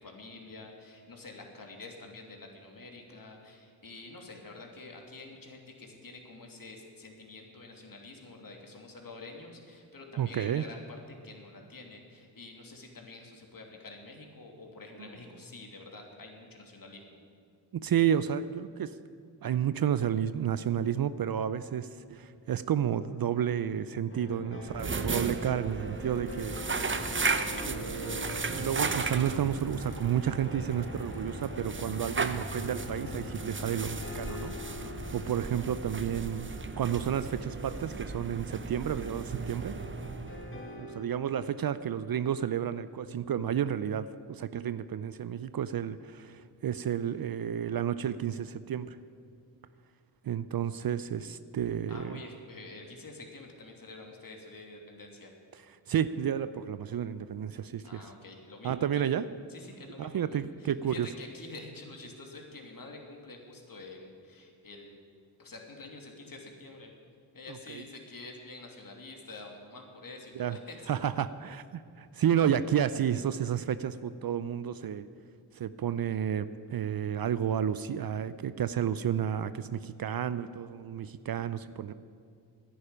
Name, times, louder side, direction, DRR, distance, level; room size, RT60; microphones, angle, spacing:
voice 1, 0.0-10.8 11.1-17.2 51.9-55.3 57.8-59.0 59.5-65.0 65.4-66.9 67.3-70.9, left 3 dB, 45° left, 1 dB, 2.9 m, -47 dB
voice 2, 10.2-10.6 15.0-15.1 17.7-19.0 19.4-26.9 27.6-36.5 36.8-39.8 40.8-49.0 50.2-52.2 55.9-58.0 58.6-59.2 60.0-61.1 67.7-67.8 70.3-70.6 70.9-75.1 75.5-81.9, right 9 dB, 50° right, 14 dB, 0.6 m, -31 dB
sound 1, 24.1-41.1, left 2 dB, 25° left, 2.1 m, -43 dB
sound 2, 24.6-40.8, right 4 dB, 25° right, 0.9 m, -36 dB
10.0 x 10.0 x 9.8 m, 2.2 s
supercardioid pair, 40°, 48 cm